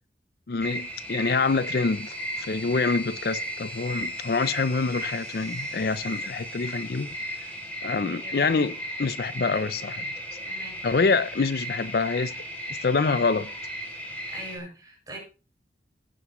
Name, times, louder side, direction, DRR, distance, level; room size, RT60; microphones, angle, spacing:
voice 1, 0.5-7.1 7.8-10.1 10.8-12.3 12.8-13.5, left 4 dB, 60° left, 0.5 m, -26 dB
sound 1, 0.6-14.6, equal, 10° left, 3.4 m, -35 dB
voice 2, 8.1-8.8 10.4-11.0 14.3-15.2, right 1 dB, 20° right, 6.3 m, -43 dB
15.5 x 9.7 x 3.1 m
head